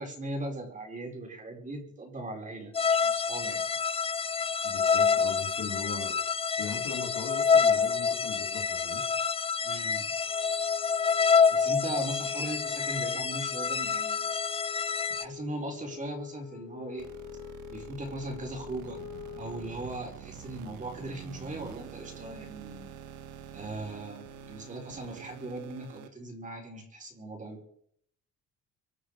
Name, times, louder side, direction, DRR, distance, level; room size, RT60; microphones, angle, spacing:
voice 1, 0.0-3.6 9.6-10.1 11.5-14.3 15.2-17.1 17.7-19.0 19.4-22.9 23.5-27.6, right 1 dB, 25° right, 2 dB, 5.2 m, -39 dB
sound 1, 2.7-15.2, left 6 dB, 20° left, 0.6 m, -27 dB
voice 2, 4.6-6.2 6.6-9.1, left 6 dB, 65° left, 3 dB, 3.4 m, -39 dB
Wind instrument woodwind instrument, 10.2-19.9, left 11 dB, 90° left, 1.5 m, -46 dB
sound 2, 17.0-26.1, right 8 dB, 75° right, 1.7 m, -47 dB
26.0 x 9.7 x 5.1 m, 0.66 s
cardioid pair, 125°, 31 cm